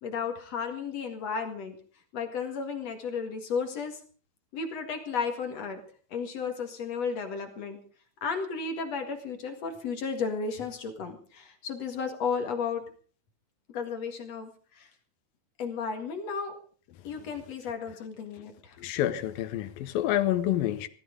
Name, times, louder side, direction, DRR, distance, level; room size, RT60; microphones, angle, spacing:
voice 1, 0.0-1.8 2.1-4.0 4.5-5.8 6.1-7.8 8.2-12.8 13.7-14.9 15.6-16.6 17.0-18.8, left 5 dB, 55° left, 2.8 m, -33 dB
voice 2, 18.8-20.9, left 12 dB, 85° left, 2.8 m, -28 dB
17.0 x 14.0 x 5.1 m
omnidirectional pair, 4.0 m